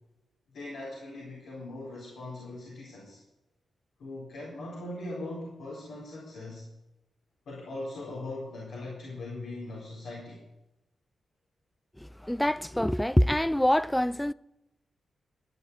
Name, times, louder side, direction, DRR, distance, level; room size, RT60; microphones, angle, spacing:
voice 1, 0.5-3.2 4.0-6.6 7.5-10.4, left 2 dB, 85° left, 4.2 m, -40 dB
voice 2, 12.0-14.3, equal, 5° left, 0.4 m, -25 dB
13.0 x 7.0 x 9.6 m
cardioid pair, 55°, 0 cm